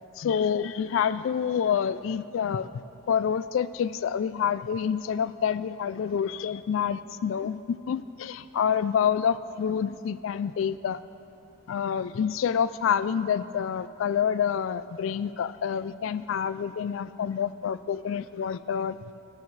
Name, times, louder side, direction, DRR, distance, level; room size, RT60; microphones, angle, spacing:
voice 1, 0.2-2.7 3.1-11.0 11.7-19.0, left 7 dB, 65° left, 15 dB, 0.3 m, -27 dB
18.5 x 16.0 x 3.2 m, 2.8 s
head